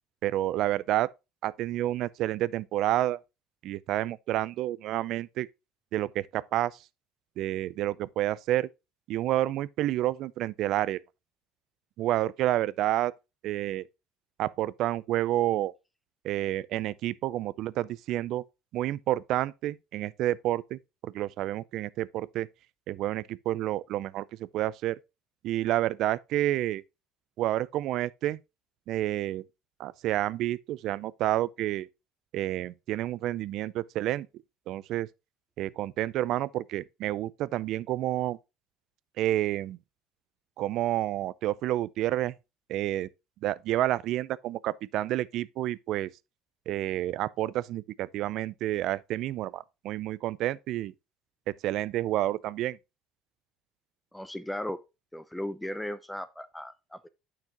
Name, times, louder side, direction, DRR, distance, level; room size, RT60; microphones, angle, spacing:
voice 1, 0.2-1.1 1.4-3.2 3.6-5.5 5.9-6.8 7.4-8.7 9.1-11.0 12.0-13.1 13.4-13.8 14.4-15.7 16.2-18.4 18.7-22.5 22.9-25.0 25.4-26.8 27.4-28.4 28.9-29.4 29.8-31.9 32.3-34.3 34.7-35.1 35.6-38.4 39.2-39.8 40.6-42.3 42.7-43.1 43.4-46.1 46.7-50.9 51.5-52.8, right 14 dB, 65° right, 0.4 m, -29 dB
voice 2, 54.1-54.8 55.1-57.1, left 1 dB, 5° left, 0.5 m, -36 dB
9.1 x 6.0 x 2.9 m
supercardioid pair, 105°, 0 cm